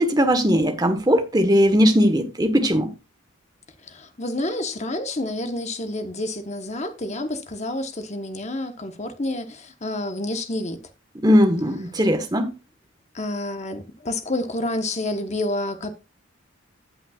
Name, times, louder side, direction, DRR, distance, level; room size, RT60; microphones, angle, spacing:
voice 1, 0.0-2.9 11.2-12.5, equal, 20° right, 1.3 m, -19 dB
voice 2, 3.9-10.8 13.1-15.9, left 1 dB, 35° left, 1.2 m, -29 dB
16.5 x 5.7 x 2.4 m
head